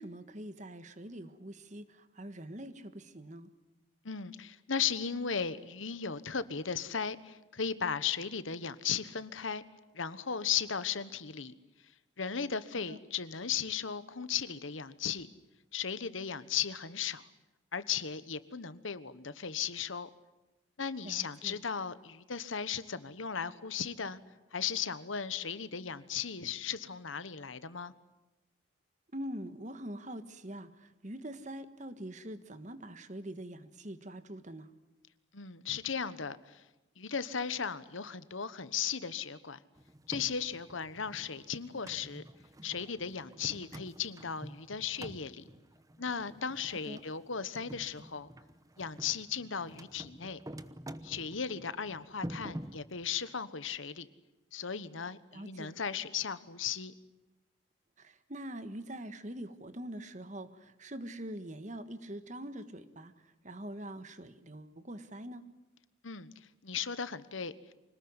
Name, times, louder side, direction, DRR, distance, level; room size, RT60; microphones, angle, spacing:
voice 1, 0.0-3.5 12.9-13.0 21.0-21.6 29.1-34.7 46.8-47.0 55.3-55.7 58.0-63.1 63.4-65.4, right 1 dB, 35° right, 11 dB, 1.5 m, -44 dB
voice 2, 4.0-9.6 9.9-11.5 12.2-15.3 15.7-17.3 17.7-20.1 20.8-24.2 24.5-27.9 35.3-36.6 37.0-39.6 40.1-42.2 42.6-45.4 46.0-48.3 48.8-50.4 51.0-54.1 54.5-56.9 66.0-66.3 66.6-67.5, left 7 dB, 80° left, 15 dB, 1.3 m, -36 dB
sound 1, 39.8-53.3, right 1 dB, 15° right, 0.9 m, -48 dB
26.0 x 19.5 x 9.7 m, 1.0 s
head